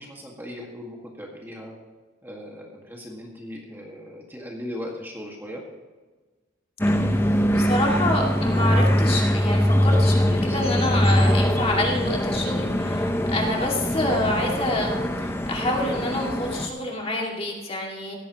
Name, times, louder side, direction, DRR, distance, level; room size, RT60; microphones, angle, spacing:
voice 1, 0.0-1.7 2.2-5.6, left 1 dB, 10° right, -1 dB, 1.8 m, -38 dB
sound 1, 6.8-16.7, equal, 10° left, 0.8 m, -22 dB
voice 2, 7.5-18.1, left 1 dB, 30° left, -1 dB, 2.3 m, -27 dB
17.0 x 14.0 x 3.0 m, 1.3 s
head